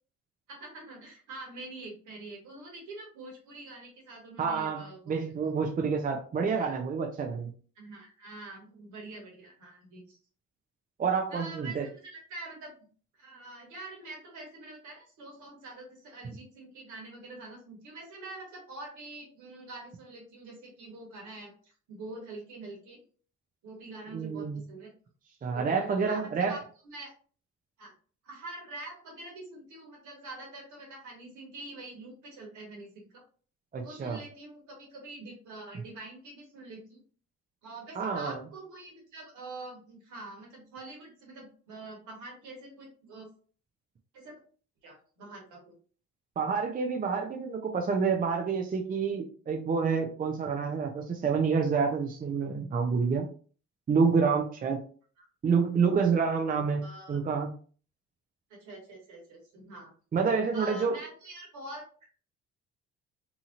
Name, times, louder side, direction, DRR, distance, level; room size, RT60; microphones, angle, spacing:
voice 1, 0.5-5.1 6.6-6.8 7.8-10.2 11.3-12.7 13.1-23.0 23.6-24.9 25.5-27.1 27.8-27.9 28.2-33.2 33.8-37.0 37.6-43.3 44.1-44.4 44.8-45.7 55.2-55.3 56.8-57.2 58.6-59.9 60.5-62.1, right 2 dB, 65° right, 0 dB, 1.4 m, -45 dB
voice 2, 4.4-7.5 11.0-11.9 24.1-24.6 25.4-26.6 33.7-34.2 38.0-38.4 46.4-53.3 53.9-54.8 55.4-57.5 60.1-61.0, right 5 dB, 25° right, 3 dB, 0.5 m, -28 dB
2.8 x 2.7 x 2.5 m, 0.41 s
hypercardioid pair, 55°, 32 cm